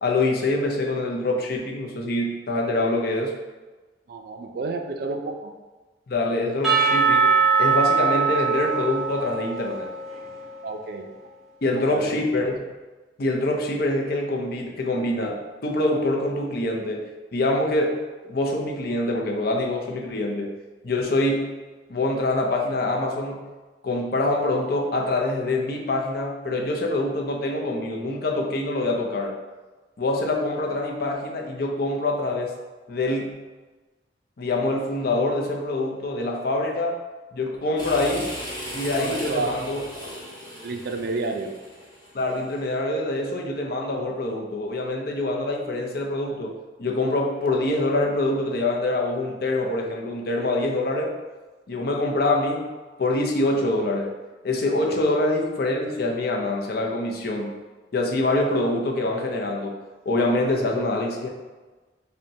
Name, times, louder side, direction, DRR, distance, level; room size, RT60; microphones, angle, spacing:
voice 1, 0.0-3.3 6.1-9.9 11.6-12.6 13.2-17.0 17.3-20.5 20.8-21.5 21.9-23.5 23.8-29.3 30.0-32.5 32.9-33.3 34.4-36.9 37.3-38.3 38.7-39.8 42.1-46.5 46.8-51.1 51.7-52.7 53.0-54.1 54.4-57.5 57.9-59.8 60.1-61.3, left 2 dB, 60° left, 0 dB, 0.5 m, -25 dB
voice 2, 4.1-5.5 10.6-11.1 11.7-12.2 39.0-39.5 40.6-41.5, right 3 dB, 60° right, 4 dB, 0.4 m, -30 dB
Percussion / Church bell, 6.6-10.6, right 5 dB, ahead, 0.9 m, -22 dB
sound 1, 37.8-42.6, equal, 25° left, 1.4 m, -37 dB
5.2 x 2.2 x 2.7 m, 1.2 s
head